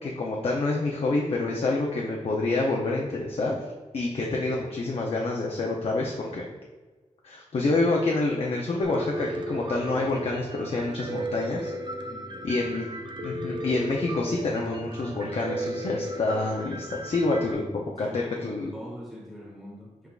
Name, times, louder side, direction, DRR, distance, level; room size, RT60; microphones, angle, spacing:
voice 1, 0.0-3.6 3.9-6.5 7.2-11.7 12.4-12.9 13.2-18.7, left 2 dB, 55° left, -1 dB, 0.5 m, -27 dB
Piano, 8.8-17.5, right 1 dB, 40° right, 0.5 m, -35 dB
voice 2, 12.1-12.6 18.0-20.1, equal, ahead, -4 dB, 1.2 m, -44 dB
5.9 x 3.4 x 2.4 m, 1.3 s
wide cardioid pair, 120°, 12 cm